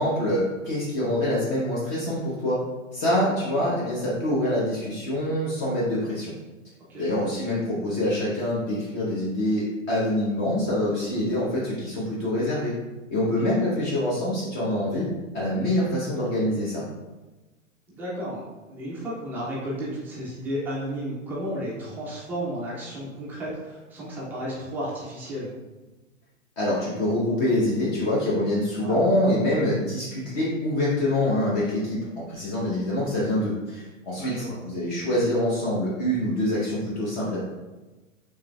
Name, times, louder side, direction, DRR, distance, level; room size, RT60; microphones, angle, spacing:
voice 1, 0.0-2.6 2.9-6.3 7.0-12.8 13.1-15.1 15.3-16.8 26.6-37.4, left 1 dB, 35° left, -6 dB, 1.0 m, -25 dB
voice 2, 6.9-7.3 13.2-13.6 17.9-18.4 18.7-25.5 28.8-28.9 34.2-34.6, equal, 5° right, -7 dB, 0.3 m, -33 dB
4.9 x 3.2 x 2.3 m, 1.2 s
figure-of-eight pair, 105°, 39 cm